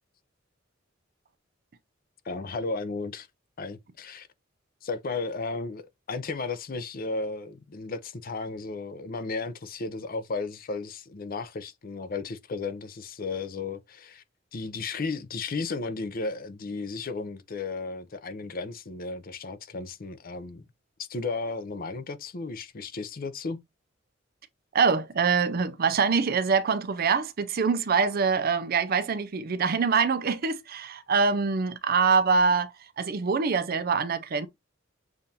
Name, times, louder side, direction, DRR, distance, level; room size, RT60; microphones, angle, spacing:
voice 1, 2.2-3.3 3.6-4.3 4.8-14.2 14.5-20.7 21.0-23.6, left 3 dB, 50° left, 0.6 m, -34 dB
voice 2, 24.7-34.5, right 5 dB, 50° right, 0.5 m, -24 dB
7.0 x 2.6 x 2.8 m
head